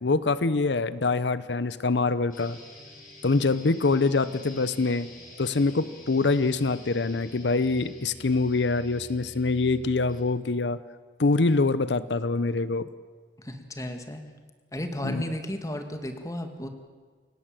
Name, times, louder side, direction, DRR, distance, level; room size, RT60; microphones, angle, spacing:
voice 1, 0.0-2.6 3.2-5.1 5.4-10.8 11.2-12.9 15.0-15.2, left 3 dB, 90° left, 16 dB, 0.7 m, -25 dB
sound 1, 2.3-10.3, left 1 dB, 50° left, 6.8 m, -47 dB
voice 2, 13.4-14.2 14.7-16.7, left 1 dB, 20° left, 6 dB, 2.0 m, -34 dB
29.0 x 16.5 x 7.6 m, 1.5 s
head